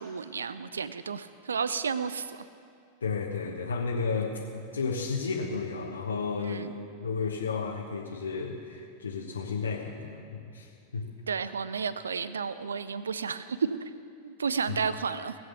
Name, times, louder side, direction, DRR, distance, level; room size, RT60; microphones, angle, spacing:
voice 1, 0.0-2.4 6.4-6.7 11.3-13.9 14.2-15.4, right 6 dB, 70° right, 15 dB, 0.4 m, -32 dB
voice 2, 3.0-6.7 7.0-11.1 14.7-14.8, left 4 dB, 75° left, -1 dB, 1.1 m, -33 dB
19.5 x 7.9 x 8.1 m, 2.5 s
figure-of-eight pair, 90°, 0 cm